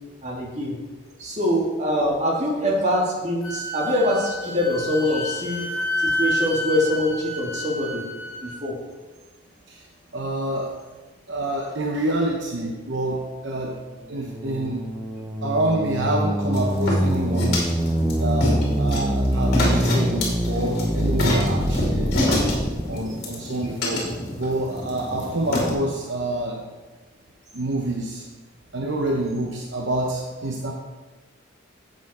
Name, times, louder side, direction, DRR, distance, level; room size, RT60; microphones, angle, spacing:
voice 1, 0.2-0.7 1.2-5.7 6.0-8.0 8.4-8.8 13.1-13.3, left 1 dB, 35° right, -2 dB, 2.3 m, -24 dB
Wind instrument woodwind instrument, 3.4-8.6, left 1 dB, 85° left, 1.8 m, -29 dB
voice 2, 10.1-10.7 11.3-13.8 14.1-14.8 15.4-17.6 18.2-22.1 22.9-24.0 24.3-26.6 27.5-28.2 28.7-30.7, right 1 dB, 60° right, 1 dB, 0.9 m, -27 dB
sound 1, 14.0-22.8, equal, 10° right, 0.8 m, -24 dB
Adding Coal To Fireplace Fire., 16.5-25.7, left 1 dB, 50° left, 2.7 m, -27 dB
10.5 x 7.5 x 4.3 m, 1.3 s
head